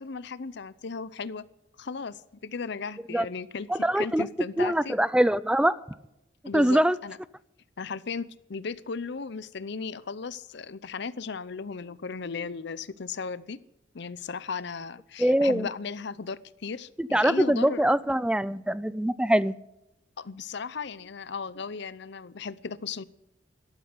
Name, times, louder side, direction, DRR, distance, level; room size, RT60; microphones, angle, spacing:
voice 1, 0.0-1.4 1.8-5.0 6.5-7.2 7.8-13.6 13.9-17.8 20.2-23.0, left 5 dB, 65° left, 0.7 m, -36 dB
voice 2, 3.7-4.3 4.6-5.8 6.5-7.0 15.2-15.7 17.0-19.5, right 1 dB, 5° right, 0.4 m, -23 dB
13.0 x 12.5 x 6.7 m
head